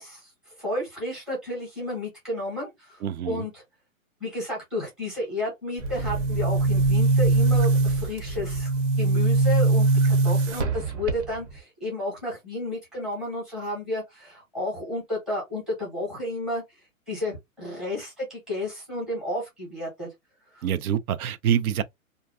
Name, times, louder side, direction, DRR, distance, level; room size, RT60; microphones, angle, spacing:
voice 1, 0.0-3.6 4.2-8.7 9.0-16.6 17.1-20.1 20.5-20.7, left 1 dB, ahead, 0.7 m, -32 dB
voice 2, 3.0-3.4 20.6-21.8, right 9 dB, 90° right, 0.5 m, -26 dB
Boom, 5.8-11.6, right 3 dB, 55° right, 0.8 m, -22 dB
2.5 x 2.2 x 2.3 m
hypercardioid pair, 160°, 42 cm